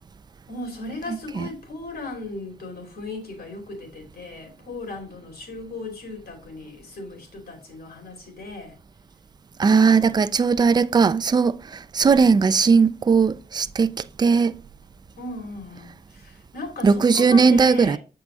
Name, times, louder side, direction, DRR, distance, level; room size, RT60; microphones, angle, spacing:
voice 1, 0.5-8.8 9.7-10.2 15.2-18.0, left 2 dB, 75° left, 2.7 m, -37 dB
voice 2, 9.6-11.6 11.9-14.5 16.8-18.0, right 5 dB, 25° right, 0.3 m, -18 dB
7.5 x 4.7 x 3.9 m
wide cardioid pair, 125°, 16 cm